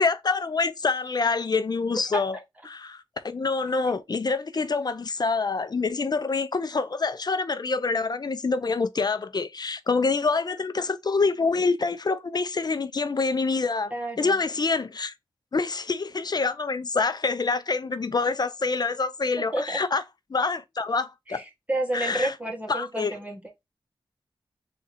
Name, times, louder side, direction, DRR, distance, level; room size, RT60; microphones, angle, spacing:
voice 1, 0.0-2.4 2.7-13.9 14.2-15.1 15.5-20.0 20.3-21.4 21.9-22.3 22.7-23.1, left 4 dB, 50° left, 0.6 m, -26 dB
voice 2, 13.9-14.4 19.5-19.8 21.3-23.4, right 1 dB, 15° right, 1.7 m, -30 dB
3.7 x 2.9 x 4.1 m
cardioid pair, 60°, 9 cm